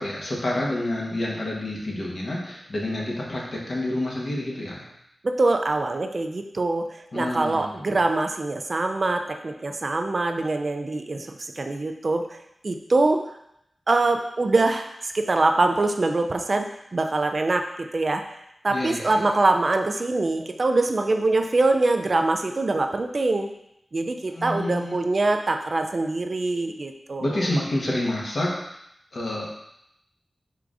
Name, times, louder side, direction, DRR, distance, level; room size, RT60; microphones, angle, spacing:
voice 1, 0.0-4.8 7.1-7.8 18.7-19.1 24.3-25.0 27.2-28.8 29.1-29.5, left 1 dB, 60° left, -3 dB, 1.1 m, -28 dB
voice 2, 5.2-12.3 12.6-13.2 13.9-18.2 18.6-23.5 23.9-27.3, right 2 dB, 50° right, 5 dB, 0.3 m, -24 dB
4.6 x 3.7 x 2.5 m, 0.79 s
wide cardioid pair, 90°, 0 cm